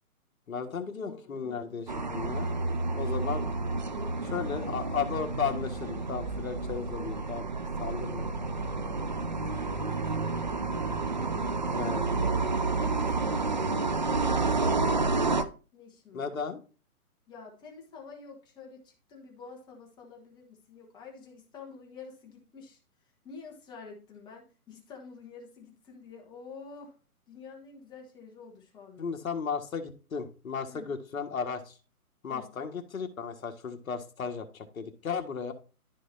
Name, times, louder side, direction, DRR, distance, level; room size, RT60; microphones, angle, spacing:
voice 1, 0.5-2.5 2.9-3.5 4.2-7.5 7.8-8.3 11.7-12.4 16.1-16.6 29.0-31.8 32.2-35.5, left 6 dB, 65° left, 5 dB, 1.7 m, -35 dB
voice 2, 1.0-1.9 3.8-4.5 9.7-11.0 11.7-12.4 12.8-15.0 15.7-16.4 17.3-22.8 23.2-26.9 27.3-29.1 30.7-30.9 32.3-32.5, left 5 dB, 10° left, 1 dB, 1.1 m, -48 dB
sound 1, 1.9-15.4, right 3 dB, 35° right, 0.4 m, -30 dB
13.0 x 4.8 x 2.7 m, 0.35 s
hypercardioid pair, 150°, 45 cm